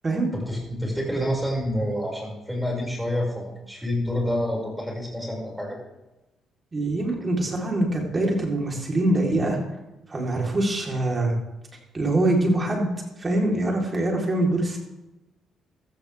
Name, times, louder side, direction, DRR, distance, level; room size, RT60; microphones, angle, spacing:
voice 1, 0.3-5.8, equal, 5° right, -2 dB, 6.2 m, -28 dB
voice 2, 6.7-9.6 10.1-11.3 11.9-12.9 13.2-14.8, right 1 dB, 30° right, -1 dB, 4.1 m, -24 dB
16.0 x 13.0 x 3.6 m, 1.0 s
cardioid pair, 90°, 0 cm